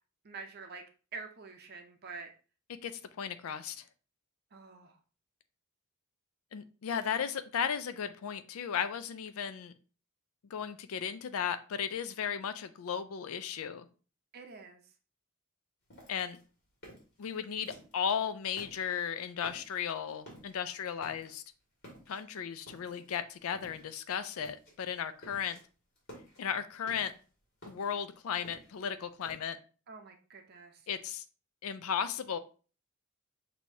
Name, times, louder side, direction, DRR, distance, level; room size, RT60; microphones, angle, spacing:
voice 1, 0.2-0.8 1.1-2.3 4.5-5.0 14.3-14.9 29.9-30.9, right 4 dB, 45° right, 5 dB, 0.6 m, -47 dB
voice 2, 2.7-3.8 6.5-9.7 10.5-13.9 16.1-16.4 17.2-21.4 22.1-25.6 26.4-27.1 27.7-29.6 30.9-31.2 31.6-32.4, left 7 dB, 85° left, 11 dB, 0.4 m, -35 dB
sound 1, 15.9-18.2 18.5-19.1 19.4-19.8 20.1-20.6 21.0-21.5 21.8-23.1 23.5-24.0 24.4-24.8 25.0-25.6 26.0-27.2 27.6-29.4, equal, 50° left, 1.9 m, -53 dB
6.3 x 2.7 x 2.7 m, 0.37 s
head